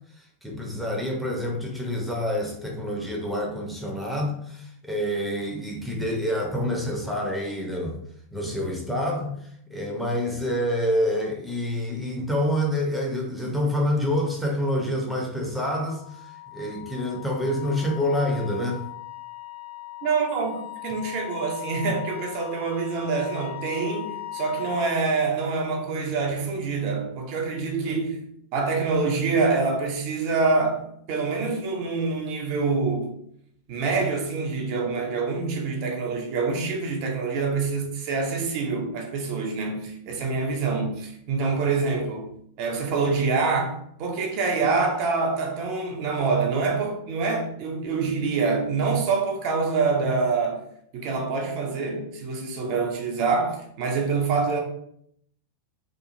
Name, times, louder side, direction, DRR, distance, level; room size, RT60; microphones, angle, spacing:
voice 1, 0.4-8.0 8.3-18.8, left 1 dB, ahead, 0.6 m, -27 dB
Wind instrument woodwind instrument, 15.6-25.0, left 17 dB, 55° left, 0.6 m, -39 dB
voice 2, 20.0-28.2 28.5-33.2 33.7-42.3 42.6-50.6 50.9-54.6, right 4 dB, 45° right, 0.5 m, -26 dB
2.9 x 2.3 x 2.5 m
figure-of-eight pair, 90°, 0 cm